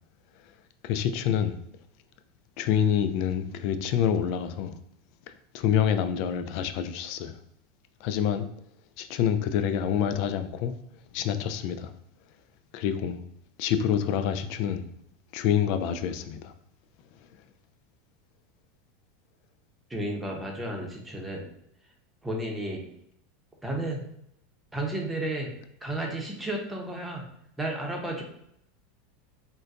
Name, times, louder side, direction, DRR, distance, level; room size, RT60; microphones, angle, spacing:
voice 1, 0.8-1.6 2.6-4.7 5.5-7.4 8.0-8.5 9.0-10.7 11.1-11.9 12.7-13.2 13.6-14.8 15.3-16.5, left 9 dB, 60° left, 10 dB, 0.4 m, -27 dB
voice 2, 19.9-21.5 22.2-22.9 23.6-24.0 24.7-25.5 25.8-27.3 27.6-28.2, right 1 dB, 10° right, 0 dB, 0.8 m, -32 dB
3.8 x 2.2 x 2.5 m, 0.75 s
hypercardioid pair, 100°, 0 cm